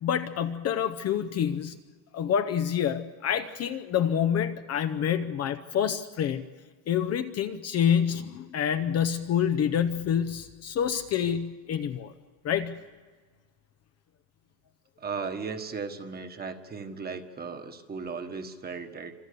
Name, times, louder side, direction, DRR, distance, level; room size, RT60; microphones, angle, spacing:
voice 1, 0.0-1.8 2.1-6.4 6.9-12.1 12.4-12.8, left 8 dB, 30° left, 9 dB, 0.7 m, -27 dB
voice 2, 15.0-19.1, right 5 dB, 20° right, 8 dB, 1.4 m, -36 dB
27.0 x 26.0 x 6.8 m, 1.5 s
cardioid pair, 155°, 48 cm